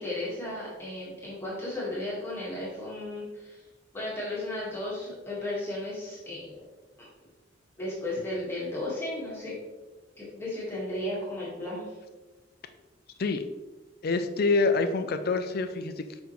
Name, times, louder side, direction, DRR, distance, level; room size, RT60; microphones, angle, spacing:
voice 1, 0.0-3.6 3.9-6.6 7.8-9.6 10.2-11.9, left 1 dB, 15° left, -7 dB, 1.6 m, -34 dB
voice 2, 14.0-16.2, left 3 dB, 55° left, 8 dB, 0.4 m, -26 dB
6.9 x 5.2 x 3.1 m, 1.2 s
head